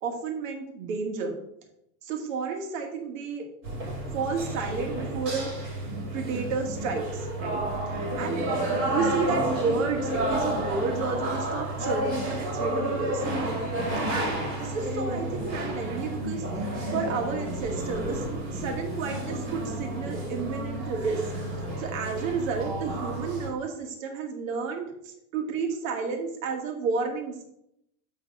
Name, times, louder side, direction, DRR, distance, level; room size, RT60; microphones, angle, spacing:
voice 1, 0.0-1.3 2.0-3.4 4.1-5.5 6.1-7.6 8.1-8.4 8.8-13.2 14.1-18.2 18.5-21.2 21.8-27.4, right 5 dB, 60° right, 2 dB, 2.1 m, -31 dB
sound 1, 3.6-23.5, right 1 dB, 30° right, 2.8 m, -31 dB
9.5 x 4.0 x 4.6 m, 0.78 s
supercardioid pair, 140°, 44 cm